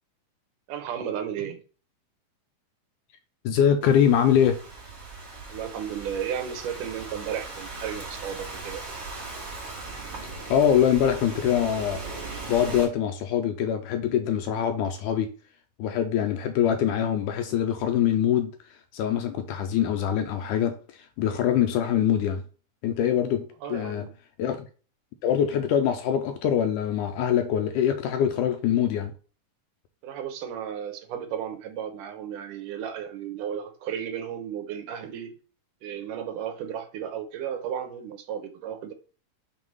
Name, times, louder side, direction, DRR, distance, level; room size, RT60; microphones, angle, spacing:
voice 1, 0.7-1.6 5.5-8.8 23.6-24.1 30.0-35.3 35.8-38.9, right 9 dB, 80° right, 2.4 m, -34 dB
voice 2, 3.4-4.6 10.5-12.0 12.5-15.3 15.8-22.4 22.8-24.1 24.4-24.7 25.2-29.1, left 9 dB, 80° left, 2.1 m, -24 dB
Thunderstorm / Rain, 3.8-12.8, right 3 dB, 35° right, 2.8 m, -39 dB
6.5 x 3.4 x 5.4 m
omnidirectional pair, 3.7 m